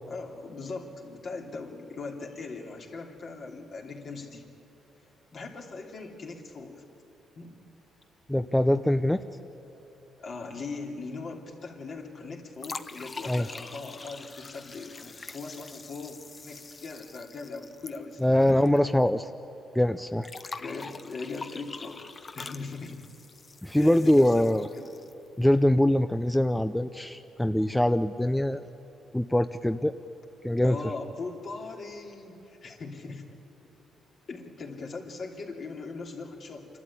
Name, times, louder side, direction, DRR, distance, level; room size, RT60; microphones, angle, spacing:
voice 1, 0.1-4.4 5.3-6.8 7.4-7.6 10.2-18.7 20.6-23.0 23.8-24.9 30.6-33.2 34.3-36.7, left 3 dB, 50° left, 1 dB, 3.0 m, -40 dB
voice 2, 8.3-9.2 13.3-13.5 18.2-19.3 19.7-20.3 23.6-24.7 25.4-28.6 29.1-29.9 30.4-30.8, left 1 dB, 5° left, 9 dB, 0.5 m, -23 dB
sound 1, 12.6-18.8 19.0-19.1 20.2-25.3, left 4 dB, 30° left, 0.9 m, -44 dB
27.5 x 12.5 x 9.9 m, 3.0 s
cardioid pair, 90°, 0 cm